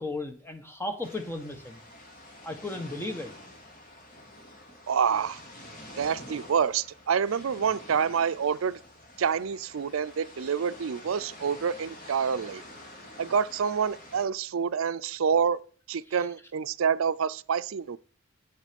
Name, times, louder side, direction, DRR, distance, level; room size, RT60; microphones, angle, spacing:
voice 1, 0.0-1.8 2.4-3.3 16.1-16.2, left 2 dB, 10° left, 1.3 m, -35 dB
sound 1, 1.0-14.2, left 1 dB, 40° left, 2.7 m, -48 dB
voice 2, 4.9-5.4 6.0-8.8 9.2-12.6 13.2-15.6 15.9-18.0, right 6 dB, 85° right, 0.5 m, -27 dB
8.7 x 7.4 x 5.2 m
head